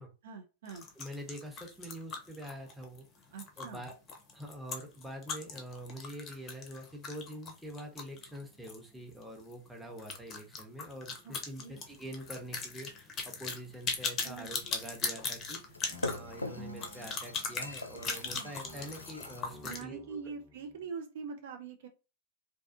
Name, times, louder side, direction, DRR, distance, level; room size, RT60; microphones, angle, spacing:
voice 1, 0.2-0.9 3.3-3.8 11.2-11.8 14.2-14.5 18.2-18.5 19.6-21.9, right 5 dB, 60° right, 4 dB, 0.5 m, -44 dB
sound 1, 0.7-8.8 9.1-9.2 9.5-9.6 10.0-19.8, left 5 dB, 30° left, 0.6 m, -39 dB
voice 2, 1.0-3.1 3.6-3.9 4.3-15.6 16.0-20.2, equal, 5° right, 1 dB, 0.7 m, -45 dB
sound 2, 13.7-19.4, left 2 dB, 90° left, 0.3 m, -44 dB
sound 3, 15.9-18.3 18.6-20.9, equal, 30° right, 0.9 m, -53 dB
2.5 x 2.2 x 2.5 m, 0.31 s
figure-of-eight pair, 95°, 0 cm